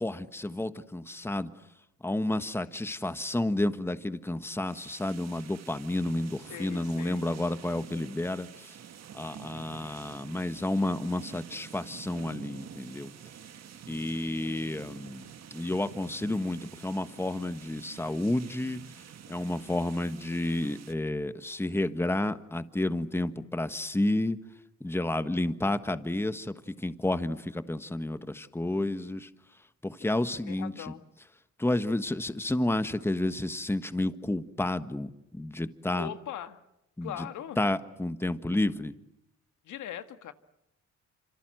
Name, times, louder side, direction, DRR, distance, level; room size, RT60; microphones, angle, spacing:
voice 1, 0.0-1.5 2.0-8.8 9.1-13.1 13.9-18.8 19.3-24.4 24.8-29.3 29.8-30.9 31.6-36.1 37.0-37.3 37.6-38.9, left 1 dB, 10° left, 11 dB, 1.4 m, -31 dB
sound 1, 4.6-20.9, right 8 dB, 60° right, 1.9 m, -48 dB
voice 2, 6.5-7.3 30.0-31.0 35.9-36.6 37.0-37.6 39.6-40.3, left 10 dB, 75° left, 10 dB, 1.6 m, -41 dB
27.0 x 26.5 x 7.8 m, 0.89 s
cardioid pair, 90°, 30 cm